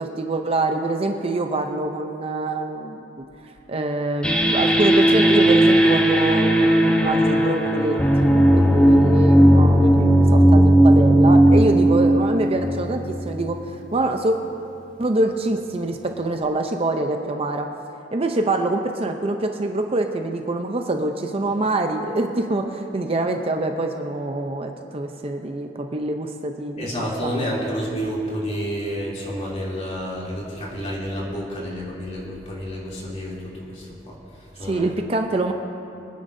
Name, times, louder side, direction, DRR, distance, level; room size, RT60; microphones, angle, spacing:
voice 1, 0.0-3.3 3.7-14.4 15.0-17.7 18.1-26.9 27.2-27.3 34.7-35.5, right 2 dB, 35° right, 4 dB, 0.6 m, -25 dB
sound 1, 4.2-13.6, right 1 dB, 5° left, 0.8 m, -16 dB
voice 2, 26.8-34.2 34.5-34.9, equal, 35° left, -5 dB, 2.9 m, -29 dB
24.0 x 9.9 x 2.7 m, 2.8 s
head